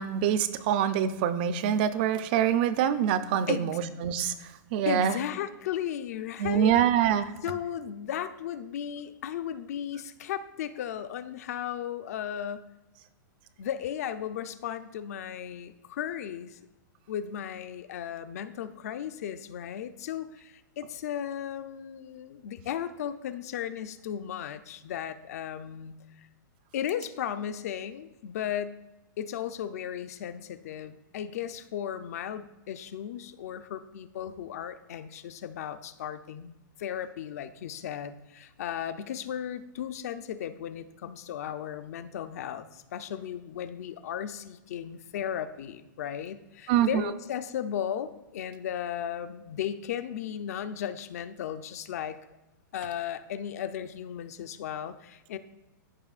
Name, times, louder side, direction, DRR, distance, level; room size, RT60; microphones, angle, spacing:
voice 1, 0.0-4.3 4.7-5.2 6.4-7.3 46.7-47.0, right 9 dB, 30° right, 12 dB, 0.4 m, -25 dB
voice 2, 3.5-3.8 4.9-6.7 7.4-12.6 13.6-16.6 17.1-26.3 26.7-28.8 29.2-52.2 52.7-55.4, left 9 dB, 50° left, 11 dB, 0.5 m, -35 dB
14.5 x 5.4 x 2.4 m, 1.0 s
supercardioid pair, 175°, 11 cm